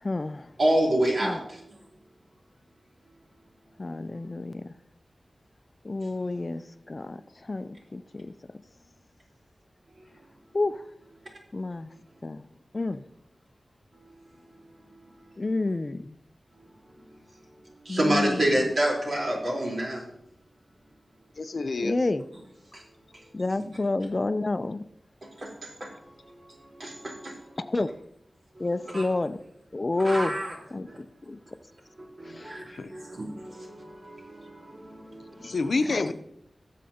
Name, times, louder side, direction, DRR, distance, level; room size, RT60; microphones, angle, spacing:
voice 1, 0.0-0.5 1.2-1.4 3.8-4.7 5.8-8.3 10.5-10.8 11.5-11.9 12.2-12.4 12.7-13.0 15.4-16.1 17.9-18.5 21.8-22.2 23.3-24.8 27.6-27.9 28.6-29.4 29.7-30.9 31.2-31.4 32.2-32.6 35.9-36.1, left 2 dB, 35° left, 12 dB, 0.4 m, -29 dB
voice 2, 0.6-1.4 17.9-20.0 26.8-26.9 27.2-27.3 28.9-29.0 30.0-30.5 32.4-32.6 32.9-33.7 35.1-35.2, right 1 dB, 65° right, -3 dB, 3.8 m, -26 dB
voice 3, 21.4-22.0 32.7-32.9 35.4-36.1, left 3 dB, 75° left, 9 dB, 0.7 m, -28 dB
18.0 x 7.4 x 2.9 m, 0.75 s
wide cardioid pair, 85°, 0 cm